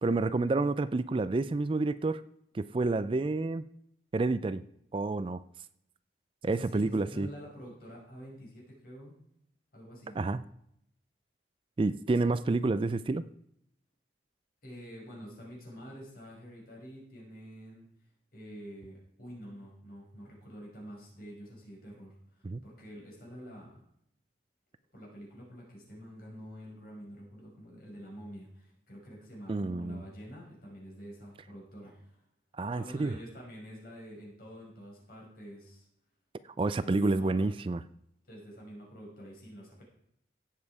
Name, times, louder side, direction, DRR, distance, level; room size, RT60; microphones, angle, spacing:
voice 1, 0.0-2.2 2.5-3.6 4.1-4.6 4.9-5.4 6.4-7.3 10.2-10.4 11.8-13.2 22.4-22.6 29.5-30.0 32.6-33.1 36.6-37.8, right 3 dB, 30° right, 15 dB, 0.3 m, -29 dB
voice 2, 6.4-9.2 9.7-10.2 14.6-17.9 18.3-23.8 24.9-32.2 32.7-35.9 36.7-37.5 38.2-39.8, equal, 50° left, -2 dB, 5.5 m, -47 dB
16.5 x 7.5 x 4.8 m, 0.73 s
head